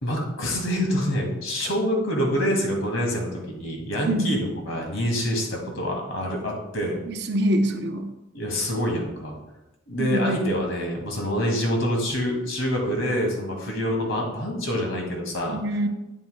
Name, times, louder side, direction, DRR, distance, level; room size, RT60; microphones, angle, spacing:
voice 1, 0.0-7.0 8.3-9.4 9.9-15.6, equal, 85° left, 1 dB, 2.0 m, -26 dB
voice 2, 7.1-8.0 10.0-10.3 15.5-15.9, right 1 dB, 60° right, 6 dB, 0.7 m, -24 dB
8.7 x 8.0 x 2.2 m, 0.96 s
head